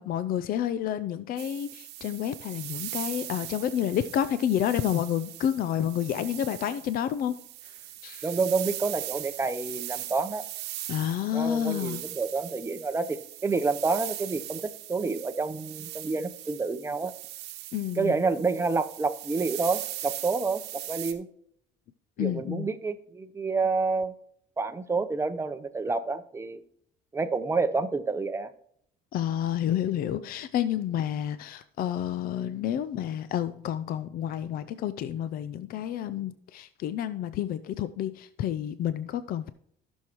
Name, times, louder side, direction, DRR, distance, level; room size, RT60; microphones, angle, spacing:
voice 1, 0.0-7.4 7.6-8.3 10.9-12.0 17.7-18.2 22.2-22.7 29.1-39.5, left 10 dB, 60° left, 14 dB, 0.4 m, -29 dB
sound 1, 1.4-21.1, right 14 dB, 85° right, 1.0 m, -40 dB
voice 2, 8.2-10.4 11.3-17.1 18.0-21.3 22.2-24.1 24.6-26.6 27.1-28.5, right 4 dB, 15° right, 9 dB, 0.7 m, -29 dB
15.0 x 6.3 x 3.0 m, 0.67 s
cardioid pair, 110°, 17 cm